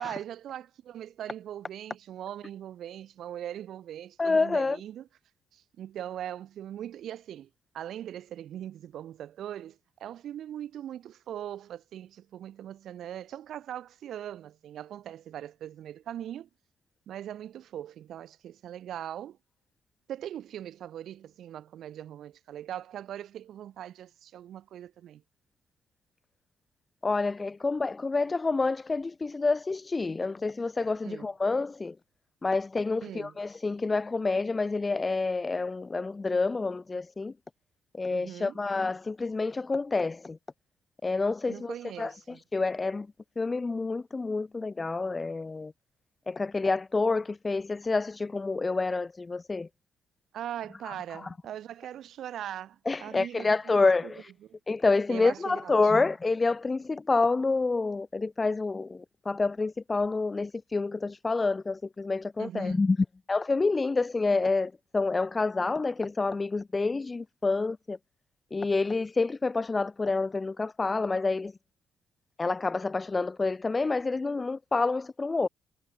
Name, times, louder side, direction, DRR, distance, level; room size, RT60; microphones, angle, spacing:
voice 1, 0.0-5.1 5.5-7.5 7.7-16.5 17.1-19.4 20.1-25.2 31.0-31.3 33.0-33.4 38.1-38.6 41.5-42.4 50.3-54.1 55.1-55.7 62.4-62.8, right 11 dB, 75° right, 2.6 m, -40 dB
voice 2, 4.2-4.8 27.0-31.9 32.4-37.3 37.9-40.4 41.0-43.1 43.4-45.7 46.3-49.7 50.8-51.3 52.9-54.3 54.7-63.0 63.3-68.0 68.5-71.5 72.4-75.5, left 3 dB, 25° left, 0.6 m, -28 dB
cardioid pair, 85°, 0 cm